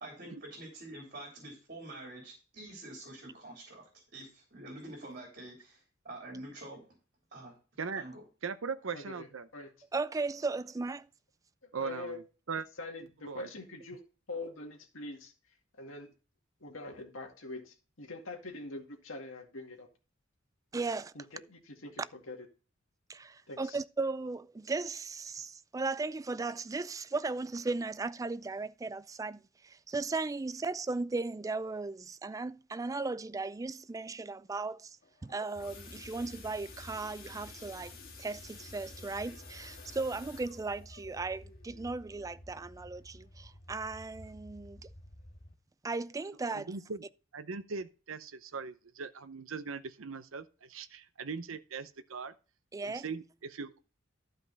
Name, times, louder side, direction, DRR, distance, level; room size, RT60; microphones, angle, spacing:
voice 1, 0.0-6.8 7.3-7.5 8.0-8.2, right 1 dB, 45° right, 3.3 m, -47 dB
voice 2, 8.4-9.5 11.7-12.2 12.5-12.7 13.2-13.5 46.5-47.0 47.3-52.3 52.8-53.8, right 5 dB, 80° right, 0.8 m, -40 dB
voice 3, 8.9-9.3 9.5-9.7 11.7-12.2 12.8-14.0 14.3-15.3 15.7-16.1 16.6-19.9 21.1-22.5 23.5-23.8, left 2 dB, 80° left, 2.1 m, -44 dB
voice 4, 9.9-11.1 20.7-21.1 23.1-35.0 35.2-37.9 38.2-44.8 45.8-46.7 52.7-53.1, right 3 dB, 15° right, 0.3 m, -36 dB
sound 1, 35.0-43.7 44.1-44.4 44.7-44.8 45.2-45.3, left 5 dB, 50° left, 2.8 m, -53 dB
sound 2, 35.5-45.5, equal, 25° left, 1.2 m, -53 dB
12.0 x 5.3 x 4.0 m
head